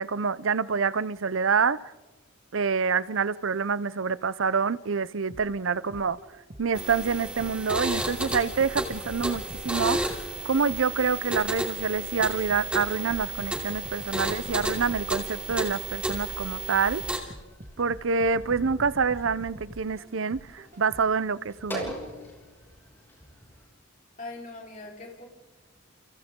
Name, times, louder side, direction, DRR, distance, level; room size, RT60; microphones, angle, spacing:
voice 1, 0.0-1.8 2.5-6.2 6.6-17.0 17.8-22.0, right 5 dB, 70° right, 0.6 m, -27 dB
sound 1, 5.3-6.9 7.4-11.7 12.2-16.5 17.0-21.3 21.8-21.9, right 1 dB, 40° right, 1.7 m, -46 dB
sound 2, 6.7-17.2, right 1 dB, 5° right, 2.9 m, -32 dB
sound 3, 16.6-23.7, equal, 10° left, 6.0 m, -44 dB
voice 2, 24.2-25.2, left 2 dB, 40° left, 4.2 m, -41 dB
30.0 x 30.0 x 3.8 m
head